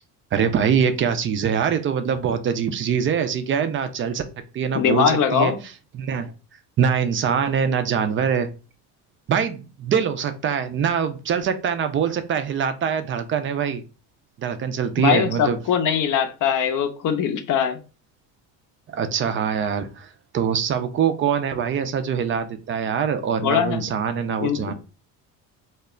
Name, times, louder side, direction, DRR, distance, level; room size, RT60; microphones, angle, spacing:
voice 1, 0.3-4.2 4.5-5.5 5.9-6.3 6.8-8.5 9.3-13.8 14.4-15.6 18.9-24.7, right 7 dB, 30° right, 0.4 m, -23 dB
voice 2, 4.7-5.6 15.0-17.8 23.4-24.0 24.4-24.7, left 7 dB, 45° left, 0.6 m, -21 dB
2.1 x 2.1 x 3.6 m
hypercardioid pair, 75°, 45 cm